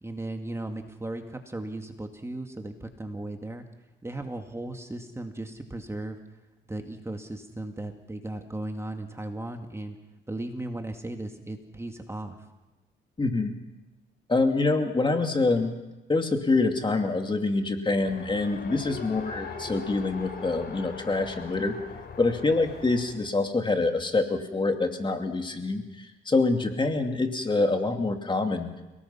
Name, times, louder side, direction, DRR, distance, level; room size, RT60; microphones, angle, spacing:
voice 1, 0.0-3.6 4.0-6.2 6.7-10.0 10.3-12.4, right 1 dB, 15° right, 4 dB, 2.2 m, -36 dB
voice 2, 13.2-13.5 14.3-15.7 16.1-21.8 22.2-28.7, left 3 dB, 25° left, 5 dB, 2.5 m, -26 dB
Race car auto racing, 18.0-23.3, left 5 dB, 55° left, 3.5 m, -40 dB
29.5 x 18.5 x 5.8 m, 1.1 s
cardioid pair, 90°, 20 cm